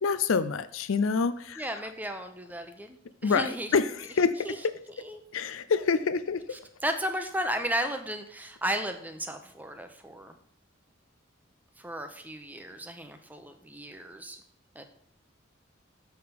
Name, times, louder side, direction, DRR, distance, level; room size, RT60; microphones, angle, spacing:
voice 1, 0.0-1.6 3.2-4.6 5.3-6.4, left 5 dB, 85° left, 13 dB, 0.5 m, -27 dB
voice 2, 1.6-3.0 3.2-3.7 4.4-4.6 5.0-5.2 6.8-10.4 11.8-14.4 14.7-14.8, right 1 dB, 10° right, 7 dB, 0.8 m, -34 dB
7.5 x 5.6 x 5.9 m, 0.64 s
head